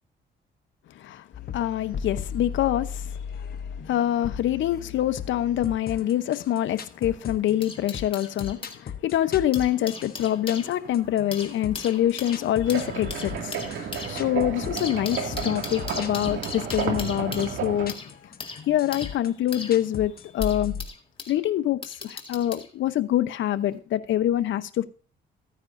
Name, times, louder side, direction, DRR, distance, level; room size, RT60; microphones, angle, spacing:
voice 1, 0.9-1.3 1.5-3.2 3.8-18.1 18.7-20.7 21.3-24.8, left 12 dB, 70° left, 0.8 m, -25 dB
sound 1, 1.3-20.9, left 7 dB, 50° left, 1.1 m, -37 dB
sound 2, 6.7-8.8 9.3-21.4 21.8-22.7 23.6-23.8, left 4 dB, 25° left, 2.0 m, -39 dB
sound 3, 12.6-17.9, right 6 dB, 75° right, 2.3 m, -32 dB
14.5 x 9.6 x 2.6 m
cardioid pair, 90°, 20 cm